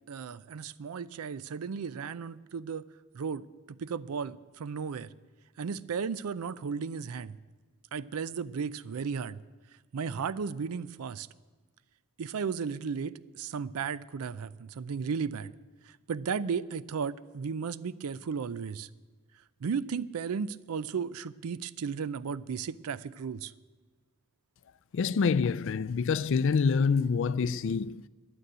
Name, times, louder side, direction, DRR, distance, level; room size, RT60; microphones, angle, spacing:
voice 1, 0.1-2.8 3.1-5.1 5.6-7.4 7.9-9.4 9.9-11.3 12.2-15.5 15.9-18.9 19.6-23.5, right 6 dB, 80° right, 0.4 m, -35 dB
voice 2, 24.9-28.0, left 5 dB, 60° left, 0.4 m, -26 dB
11.0 x 9.3 x 9.7 m
head